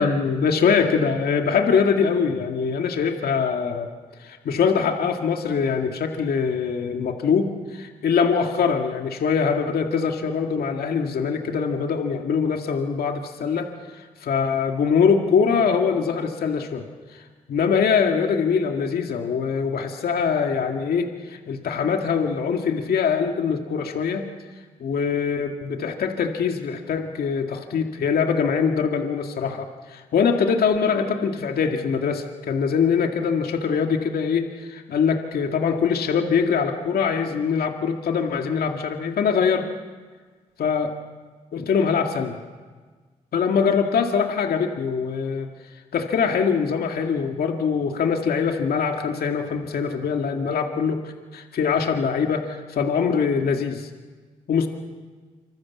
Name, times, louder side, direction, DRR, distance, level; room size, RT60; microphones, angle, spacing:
voice 1, 0.0-3.9 4.2-16.8 17.1-24.3 24.8-39.7 40.6-40.9 41.5-42.4 43.3-45.5 45.9-53.9 54.5-54.7, left 6 dB, 70° left, 4 dB, 2.1 m, -23 dB
26.5 x 25.0 x 7.4 m, 1.5 s
supercardioid pair, 40°, 16 cm